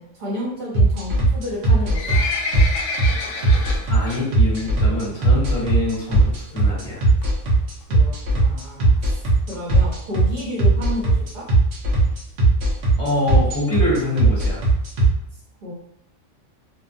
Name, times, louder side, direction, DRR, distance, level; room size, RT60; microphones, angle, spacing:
voice 1, 0.0-2.2 7.9-11.4 15.6-15.7, equal, 45° right, -7 dB, 1.0 m, -31 dB
sound 1, 0.7-15.1, right 2 dB, 70° right, 1.0 m, -17 dB
Livestock farm animals working animals, 1.5-4.2 4.6-4.8 5.2-5.3 5.9-6.0 6.3-6.4 6.6-6.7 7.2-7.5 8.1-8.2 8.4-8.5 8.6-8.7 9.0-9.1 9.5-9.6 10.1-10.2 10.7-10.8, left 4 dB, 80° left, 0.9 m, -28 dB
voice 2, 3.9-7.0 13.0-14.6, left 2 dB, 30° left, -7 dB, 1.1 m, -25 dB
2.7 x 2.2 x 2.5 m, 0.75 s
omnidirectional pair, 1.2 m